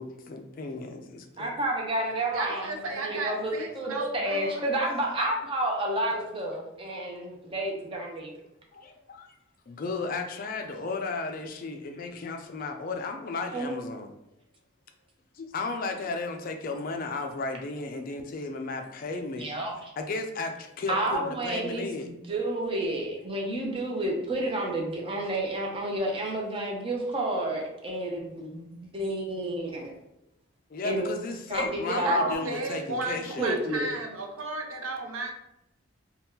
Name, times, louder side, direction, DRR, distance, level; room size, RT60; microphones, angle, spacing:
voice 1, 0.0-1.6 6.9-7.1 8.7-9.3 9.7-14.1 15.3-19.5 20.0-22.1 25.4-25.5 30.7-33.5, left 3 dB, 40° left, 4 dB, 0.3 m, -34 dB
voice 2, 1.4-8.3 13.5-13.7 19.4-19.9 20.9-29.9 30.8-31.1 31.5-32.3 33.4-33.9, right 1 dB, 25° right, 0 dB, 0.5 m, -30 dB
voice 3, 2.3-4.7 5.2-5.3 31.9-35.3, right 2 dB, 75° right, 1 dB, 0.6 m, -34 dB
2.8 x 2.3 x 3.5 m, 0.86 s
head